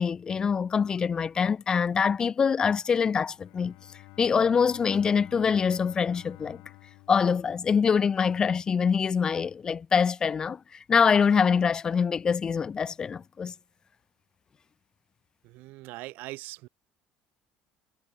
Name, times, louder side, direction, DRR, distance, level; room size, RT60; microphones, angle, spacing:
voice 1, 0.0-3.7 4.2-6.6 7.1-10.6 10.9-13.5, left 6 dB, 20° left, 0.6 m, -24 dB
Bowed string instrument, 3.2-8.1, left 25 dB, 70° left, 4.1 m, -51 dB
voice 2, 15.4-16.7, right 20 dB, 65° right, 1.3 m, -41 dB
cardioid pair, 160°, 3 cm